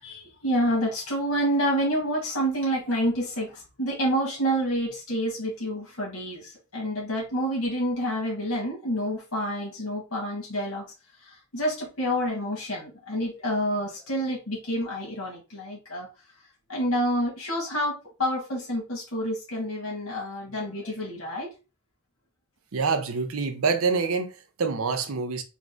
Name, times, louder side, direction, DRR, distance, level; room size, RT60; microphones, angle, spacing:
voice 1, 0.0-10.8 11.2-16.1 16.7-21.5, equal, 75° left, 1.5 m, -28 dB
voice 2, 22.7-25.4, right 4 dB, 80° right, 0.6 m, -26 dB
3.7 x 2.4 x 3.7 m
head